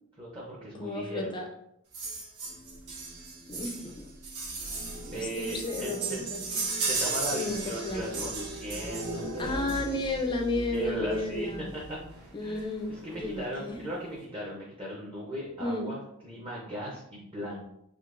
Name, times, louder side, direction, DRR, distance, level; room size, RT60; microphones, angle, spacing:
voice 1, 0.2-1.3 5.1-6.2 6.9-9.7 10.7-11.8 12.4-12.7 13.0-17.6, equal, 25° right, -4 dB, 0.6 m, -37 dB
voice 2, 0.8-1.5 3.5-4.1 5.1-6.4 7.3-8.3 9.4-11.7 12.3-13.8 15.6-15.9, left 2 dB, 20° left, 2 dB, 0.4 m, -33 dB
sound 1, 1.9-10.3 11.4-11.5 11.8-11.9 12.1-12.3 12.6-13.2 13.7-13.8, right 4 dB, 90° right, 1.2 m, -36 dB
sound 2, 2.4-13.4, equal, 55° right, 0.8 m, -42 dB
3.7 x 2.8 x 2.4 m, 0.77 s
head